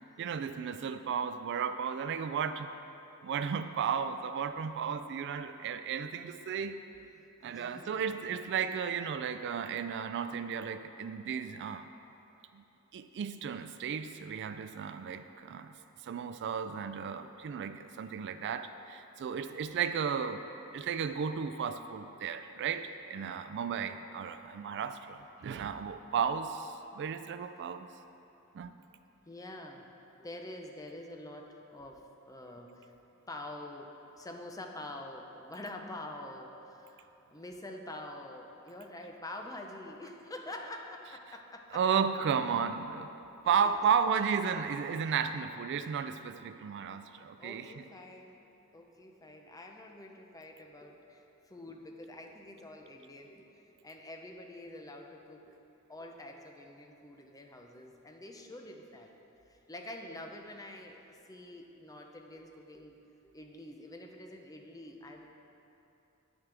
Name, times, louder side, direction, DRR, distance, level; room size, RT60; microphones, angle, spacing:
voice 1, 0.2-2.7 3.2-6.8 7.4-11.9 12.5-12.6 12.9-15.7 16.0-20.4 20.7-27.9 28.5-28.7 41.7-43.1 43.5-47.6, right 7 dB, 55° right, 10 dB, 0.3 m, -34 dB
voice 2, 7.5-8.3 17.2-17.3 23.9-24.0 25.5-25.6 29.3-29.9 30.2-32.9 33.3-41.8 43.4-43.8 46.8-46.9 47.4-55.6 55.9-59.1 59.5-62.9 63.3-65.3, left 1 dB, 15° left, 2 dB, 0.7 m, -47 dB
10.0 x 9.4 x 3.4 m, 2.9 s
head